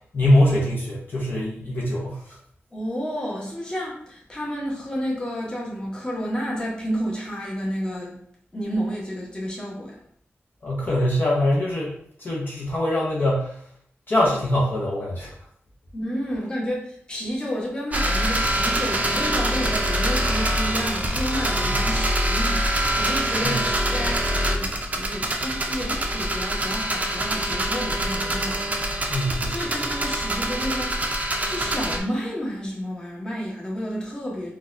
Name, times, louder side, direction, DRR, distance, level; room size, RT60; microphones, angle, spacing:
voice 1, 0.1-2.4 10.6-11.9 12.2-13.6 14.1-15.3 21.6-21.9 23.4-23.6 29.1-29.8, left 1 dB, 50° left, -4 dB, 0.7 m, -23 dB
voice 2, 2.7-8.2 8.5-10.0 15.9-29.2 29.5-34.5, equal, 20° left, -4 dB, 1.0 m, -31 dB
sound 1, 17.9-32.0, right 1 dB, 35° right, 0.5 m, -25 dB
3.9 x 2.3 x 2.6 m, 0.63 s
wide cardioid pair, 110°, 4 cm